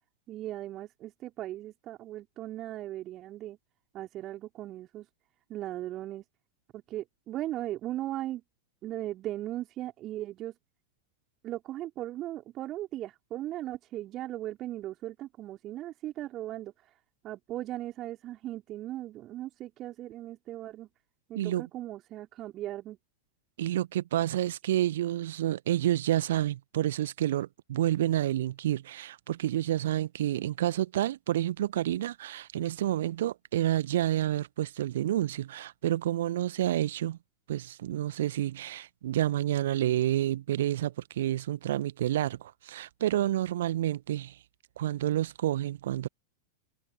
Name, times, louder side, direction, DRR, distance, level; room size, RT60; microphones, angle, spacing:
voice 1, 0.3-3.6 3.9-5.1 5.5-6.2 6.7-8.4 8.8-10.5 11.4-16.7 17.2-20.9 21.3-23.0, right 14 dB, 35° right, 4.7 m, -38 dB
voice 2, 23.6-37.2 37.5-44.4 44.8-46.1, right 13 dB, 60° right, 1.1 m, -29 dB
figure-of-eight pair, 90°, 0 cm